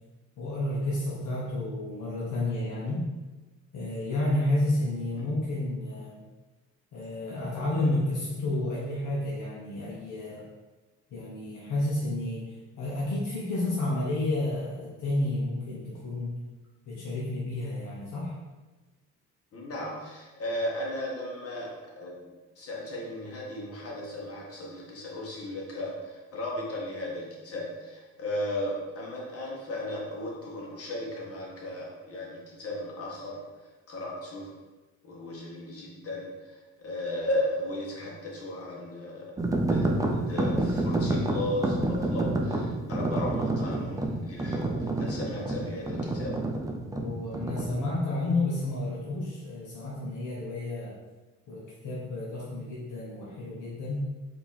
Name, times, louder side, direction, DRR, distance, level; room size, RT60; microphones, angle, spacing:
voice 1, 0.4-3.1 3.7-6.2 6.9-10.4 11.1-16.3 16.9-18.3 47.0-50.9 51.5-54.1, left 2 dB, 75° left, -5 dB, 1.0 m, -31 dB
voice 2, 19.5-33.4 33.9-34.5 35.0-39.3 39.5-46.4, left 1 dB, 50° left, -3 dB, 1.5 m, -35 dB
sound 1, 39.4-47.8, right 2 dB, 10° right, 0.5 m, -29 dB
4.4 x 2.9 x 4.1 m, 1.2 s
cardioid pair, 90°, 30 cm